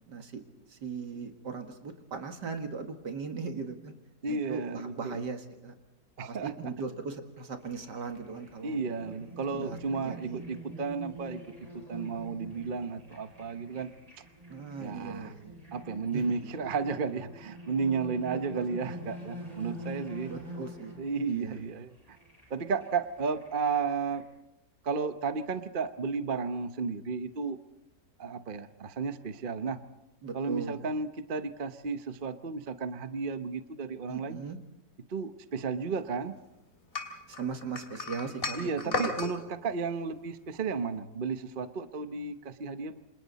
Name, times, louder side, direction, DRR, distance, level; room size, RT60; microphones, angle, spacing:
voice 1, 0.1-0.4 0.7-3.9 4.3-5.7 6.3-8.8 9.5-10.4 14.5-15.6 16.1-16.4 18.5-19.1 20.3-21.0 21.3-21.6 30.2-30.9 34.1-34.6 37.3-39.1, right 5 dB, 70° right, 5 dB, 2.5 m, -39 dB
voice 2, 4.2-5.2 6.2-6.5 8.6-11.4 11.7-13.9 14.8-15.3 15.7-20.3 21.0-22.2 22.5-24.2 24.8-27.6 28.2-29.8 30.3-34.4 35.1-36.3 38.6-43.0, right 5 dB, 40° right, 10 dB, 0.9 m, -33 dB
sound 1, 7.6-24.2, equal, 20° right, 7.0 m, -46 dB
sound 2, 36.9-39.3, left 3 dB, 30° left, 3.3 m, -34 dB
29.0 x 27.0 x 4.1 m, 0.90 s
omnidirectional pair, 1.9 m